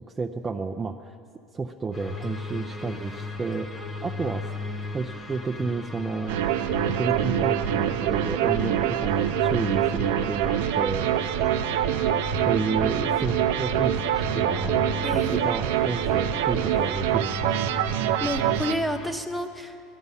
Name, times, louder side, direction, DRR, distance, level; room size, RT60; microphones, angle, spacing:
voice 1, 0.2-1.2 1.5-3.7 4.0-4.5 4.9-6.4 6.8-11.1 12.5-17.6, right 4 dB, 15° right, 3 dB, 0.5 m, -31 dB
sound 1, 1.9-19.1, left 3 dB, 25° left, 1.1 m, -36 dB
sound 2, 6.3-18.8, right 11 dB, 85° right, 0.5 m, -25 dB
voice 2, 15.0-15.4 18.2-19.8, left 1 dB, 5° left, 6 dB, 0.9 m, -30 dB
19.5 x 12.5 x 5.6 m, 2.6 s
supercardioid pair, 145°, 0 cm